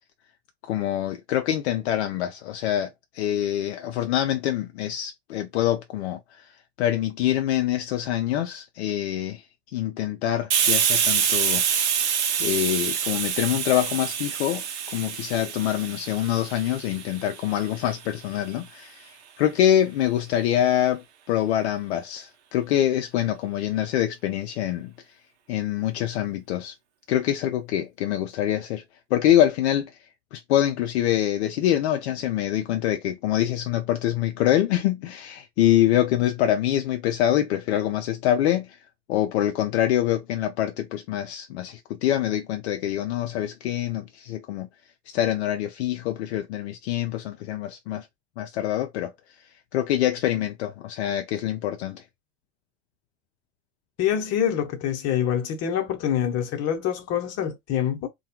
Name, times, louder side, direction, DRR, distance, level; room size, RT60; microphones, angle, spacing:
voice 1, 0.6-2.9 3.1-6.5 6.8-9.4 9.7-11.6 12.4-14.6 14.9-24.9 25.5-26.7 27.1-28.8 29.1-29.9 30.3-38.8 39.1-44.7 45.1-48.1 48.4-49.1 49.7-52.0, left 12 dB, 70° left, 0.5 m, -25 dB
Hiss, 10.5-17.9, right 8 dB, 75° right, 0.7 m, -26 dB
voice 2, 54.0-58.1, left 9 dB, 50° left, 0.9 m, -25 dB
2.2 x 2.2 x 2.8 m
hypercardioid pair, 75°, 34 cm